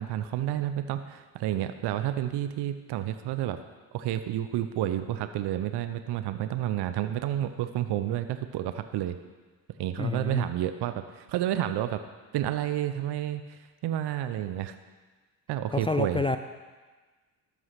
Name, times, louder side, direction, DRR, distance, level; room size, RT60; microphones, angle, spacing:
voice 1, 0.0-3.6 3.9-9.2 9.8-12.0 12.3-14.8 15.5-16.2, right 12 dB, 60° right, 10 dB, 0.7 m, -30 dB
voice 2, 10.0-10.5 15.7-16.4, left 3 dB, 15° left, 8 dB, 0.3 m, -28 dB
13.0 x 4.9 x 5.8 m, 1.3 s
hypercardioid pair, 60°, 45 cm